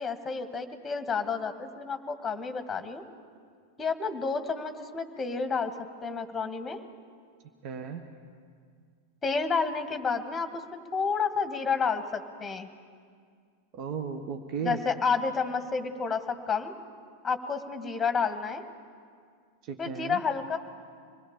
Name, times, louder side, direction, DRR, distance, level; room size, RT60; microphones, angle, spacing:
voice 1, 0.0-3.0 3.8-5.7 6.0-6.8 9.2-10.6 10.9-12.7 14.6-16.7 17.2-18.6 19.8-20.6, left 5 dB, 15° left, 8 dB, 1.8 m, -30 dB
voice 2, 7.6-8.0 13.7-14.8 19.6-20.2, right 6 dB, 40° right, 5 dB, 1.4 m, -35 dB
26.5 x 20.0 x 7.0 m, 2.1 s
figure-of-eight pair, 90°, 0 cm